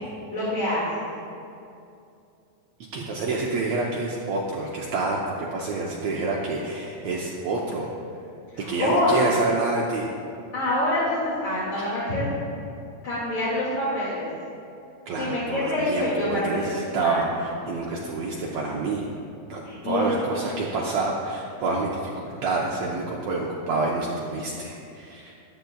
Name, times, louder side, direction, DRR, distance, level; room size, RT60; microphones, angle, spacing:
voice 1, 0.3-0.8 8.5-9.1 10.5-12.2 13.0-14.3 15.1-16.5 17.0-17.2 19.6-20.1, left 1 dB, 40° left, -9 dB, 2.4 m, -26 dB
voice 2, 2.9-7.9 8.6-10.1 15.1-19.1 19.5-25.3, right 3 dB, 90° right, -3 dB, 1.4 m, -28 dB
14.0 x 10.5 x 2.3 m, 2.6 s
omnidirectional pair, 4.0 m